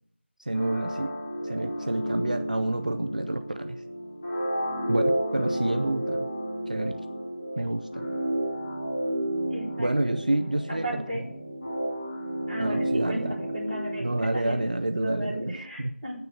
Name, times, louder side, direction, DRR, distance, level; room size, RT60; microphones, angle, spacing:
voice 1, 0.4-1.2 1.4-3.8 4.9-5.0 5.3-6.3 6.7-6.9 7.6-8.0 9.8-10.9 12.6-13.4 14.0-15.9, right 1 dB, 40° right, 8 dB, 0.5 m, -28 dB
sound 1, 0.5-15.1, right 1 dB, 25° left, 3.0 m, -31 dB
voice 2, 9.5-9.9 10.8-11.2 12.5-14.0 14.3-14.6 14.9-16.2, right 1 dB, ahead, -16 dB, 1.9 m, -34 dB
9.5 x 6.8 x 7.8 m, 0.66 s
figure-of-eight pair, 180°, 6 cm